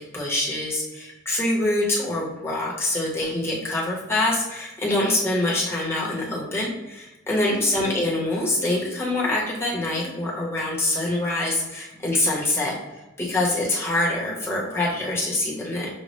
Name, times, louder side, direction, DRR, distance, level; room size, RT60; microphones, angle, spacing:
voice 1, 0.0-12.8 13.2-15.9, left 2 dB, 10° left, -5 dB, 1.1 m, -25 dB
6.4 x 2.4 x 3.1 m, 1.0 s
head